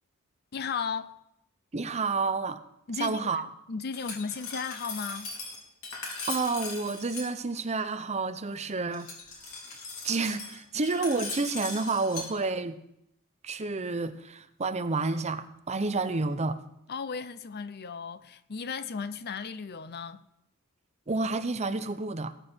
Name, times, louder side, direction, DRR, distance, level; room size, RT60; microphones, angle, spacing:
voice 1, 0.5-1.2 2.9-3.4 3.7-5.3 16.9-20.2, left 5 dB, 45° left, 0.6 m, -35 dB
voice 2, 1.7-2.6 3.0-3.5 6.3-9.1 10.0-12.8 13.4-16.6 21.1-22.3, right 3 dB, 30° right, 0.7 m, -30 dB
Glass, 3.9-7.3 8.9-12.3, left 3 dB, 70° left, 3.4 m, -39 dB
19.5 x 8.5 x 4.5 m
head